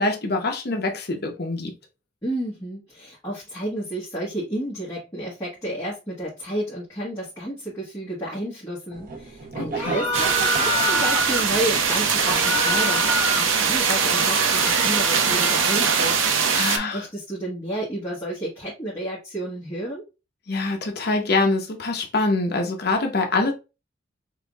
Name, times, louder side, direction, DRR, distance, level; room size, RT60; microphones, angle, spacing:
voice 1, 0.0-1.7 9.7-9.9 16.5-17.0 20.5-23.5, left 3 dB, 55° left, 0.9 m, -24 dB
voice 2, 2.2-16.2 16.4-16.6 16.9-20.0, right 1 dB, 15° left, 1.4 m, -31 dB
sound 1, 8.9-14.2, right 4 dB, 45° right, 0.9 m, -37 dB
sound 2, 9.7-11.4 12.1-13.5 13.9-16.2, equal, 5° right, 1.3 m, -27 dB
sound 3, 10.1-16.8, right 6 dB, 90° right, 0.7 m, -22 dB
5.7 x 2.6 x 2.4 m
head